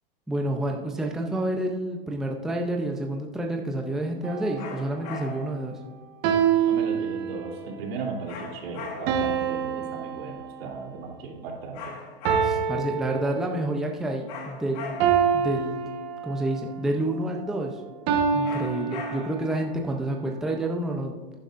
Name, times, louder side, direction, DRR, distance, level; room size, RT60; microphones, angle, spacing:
voice 1, 0.3-5.8 12.4-15.0 15.3-15.9 16.2-17.8 18.3-21.1, right 1 dB, ahead, 1 dB, 0.5 m, -29 dB
sound 1, 4.2-4.7 6.2-7.7 9.1-10.9 12.2-13.9 15.0-16.6 18.1-19.7, right 7 dB, 40° right, 1.2 m, -26 dB
sound 2, 4.6-5.6 8.3-9.4 11.7-12.8 14.3-15.3 18.4-19.5, left 4 dB, 50° left, 1.7 m, -39 dB
voice 2, 6.7-12.0, right 4 dB, 85° right, 0 dB, 3.2 m, -36 dB
11.0 x 10.0 x 2.5 m, 1.3 s
supercardioid pair, 150°, 30 cm